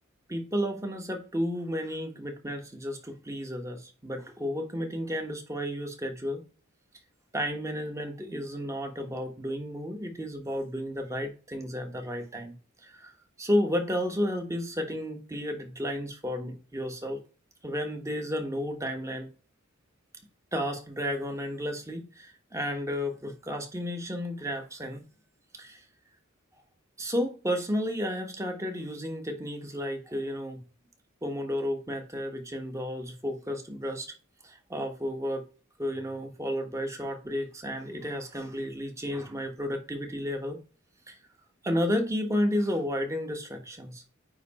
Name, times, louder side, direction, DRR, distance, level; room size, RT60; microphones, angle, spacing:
voice 1, 0.3-6.4 7.3-12.5 12.8-13.1 13.4-17.2 17.6-19.3 20.5-25.0 25.6-25.8 27.0-30.6 31.2-34.1 34.4-35.4 35.8-40.6 41.1-41.2 41.6-44.1, equal, 15° right, 1.3 m, -32 dB
9.4 x 3.3 x 4.3 m
head